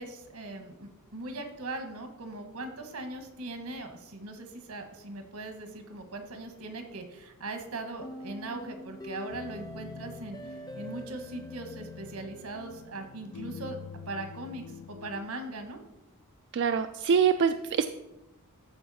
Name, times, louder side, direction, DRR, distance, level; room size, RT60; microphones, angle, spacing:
voice 1, 0.0-13.8 14.1-15.8, right 2 dB, 80° right, 6 dB, 1.4 m, -40 dB
sound 1, 8.0-13.0, left 1 dB, 15° left, 0.6 m, -45 dB
sound 2, 9.3-15.3, left 5 dB, 80° left, 0.5 m, -46 dB
voice 2, 16.5-17.9, right 6 dB, 55° right, 8 dB, 0.3 m, -24 dB
14.0 x 4.6 x 4.2 m, 0.97 s
head